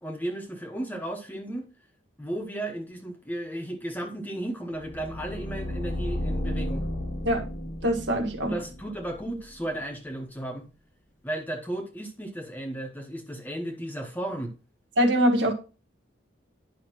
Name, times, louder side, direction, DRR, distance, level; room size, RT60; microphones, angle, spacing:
voice 1, 0.0-1.7 2.2-6.9 8.5-10.7 11.2-14.5, right 1 dB, 10° left, 1.1 m, -34 dB
sound 1, 4.7-9.7, left 1 dB, 40° left, 0.9 m, -33 dB
voice 2, 7.8-8.6 15.0-15.5, equal, 65° right, 1.7 m, -23 dB
10.0 x 5.7 x 3.0 m
head